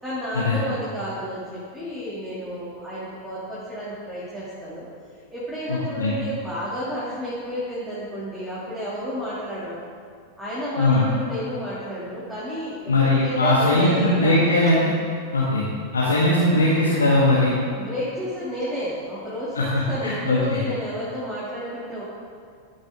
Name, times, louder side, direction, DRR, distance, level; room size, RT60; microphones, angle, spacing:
voice 1, 0.0-4.8 5.3-9.8 10.4-12.9 13.2-14.6 17.7-22.0, equal, 5° right, -10 dB, 3.0 m, -31 dB
voice 2, 5.7-6.2 10.8-11.0 12.9-14.9 15.3-17.5 19.6-19.7 20.0-20.6, left 2 dB, 75° left, -6 dB, 1.8 m, -20 dB
14.5 x 8.7 x 3.8 m, 2.2 s
figure-of-eight pair, 90°, 0 cm